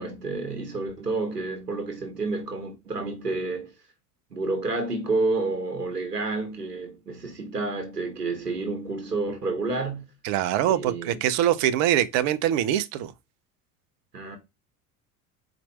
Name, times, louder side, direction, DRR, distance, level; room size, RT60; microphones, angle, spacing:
voice 1, 0.0-3.7 4.3-10.1 10.6-11.2 14.1-14.4, right 3 dB, 90° right, 1.1 m, -29 dB
voice 2, 10.2-13.1, right 11 dB, 50° right, 0.7 m, -23 dB
4.5 x 2.5 x 4.2 m
figure-of-eight pair, 70°, 46 cm